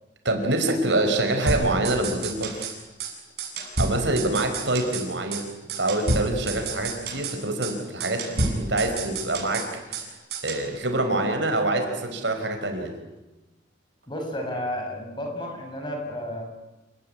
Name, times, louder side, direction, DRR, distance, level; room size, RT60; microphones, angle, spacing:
voice 1, 0.2-2.7 3.8-10.1 10.4-12.9, right 2 dB, 85° right, 5 dB, 4.9 m, -26 dB
sound 1, 1.5-2.7 3.0-3.1 3.4-5.1 5.3-5.4 5.7-7.4 7.6-7.7 8.0-10.1 10.3-10.7, right 2 dB, 60° right, 7.3 m, -29 dB
voice 2, 14.1-16.4, left 1 dB, 25° left, 2 dB, 6.6 m, -32 dB
28.0 x 18.5 x 9.8 m, 1.1 s
head